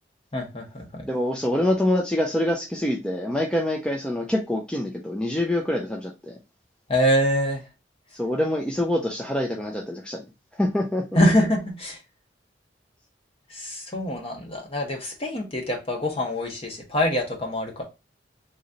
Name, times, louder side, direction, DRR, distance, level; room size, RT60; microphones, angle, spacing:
voice 1, 0.3-1.1 6.9-7.6 11.1-12.0 13.5-17.8, equal, 30° left, 1 dB, 1.3 m, -24 dB
voice 2, 1.0-6.4 8.1-10.2 10.5-11.2, left 1 dB, 5° left, 0 dB, 0.5 m, -25 dB
3.8 x 3.1 x 2.6 m, 0.26 s
head